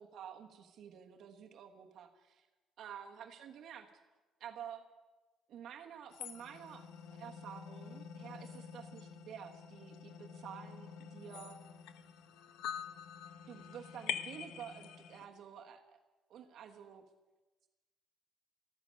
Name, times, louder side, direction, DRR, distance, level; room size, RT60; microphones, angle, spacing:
voice 1, 0.0-2.5 2.8-3.9 4.4-4.8 5.5-11.6 13.5-16.0 16.3-17.0, right 8 dB, 50° right, 3 dB, 1.3 m, -50 dB
sound 1, 6.1-15.3, left 8 dB, 80° left, 0.8 m, -46 dB
14.5 x 13.5 x 6.4 m, 1.2 s
cardioid pair, 170°, 0 cm